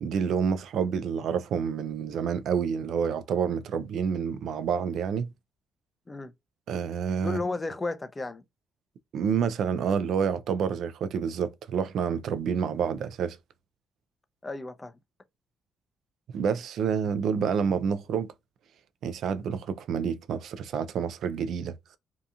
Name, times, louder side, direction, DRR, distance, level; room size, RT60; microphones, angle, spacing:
voice 1, 0.0-5.3 6.7-7.4 9.1-13.4 16.3-18.3 19.0-21.7, right 7 dB, 70° right, 0.3 m, -28 dB
voice 2, 7.2-8.4 14.4-14.9, left 2 dB, 20° left, 0.4 m, -33 dB
2.7 x 2.4 x 2.3 m
cardioid pair, 90°, 0 cm